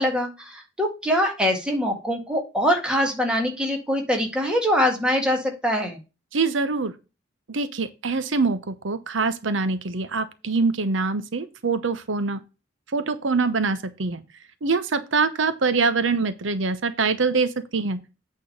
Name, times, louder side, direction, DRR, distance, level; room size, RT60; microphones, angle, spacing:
voice 1, 0.0-6.0, equal, 5° right, 1.9 m, -23 dB
voice 2, 6.3-6.9 7.5-12.4 12.9-14.2 14.6-18.0, right 4 dB, 80° right, 0.8 m, -24 dB
8.7 x 3.7 x 6.5 m
head